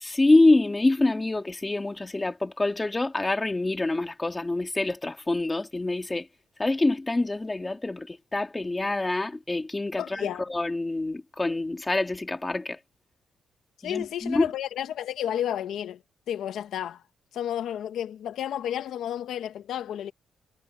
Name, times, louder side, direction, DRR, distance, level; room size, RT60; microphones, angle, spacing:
voice 1, 0.0-6.3 6.6-12.8 13.8-14.5, left 2 dB, 15° left, 2.1 m, -26 dB
voice 2, 10.0-10.5 13.8-16.0 16.3-17.0 17.3-20.1, left 10 dB, 80° left, 1.1 m, -31 dB
cardioid pair, 150°, 0 cm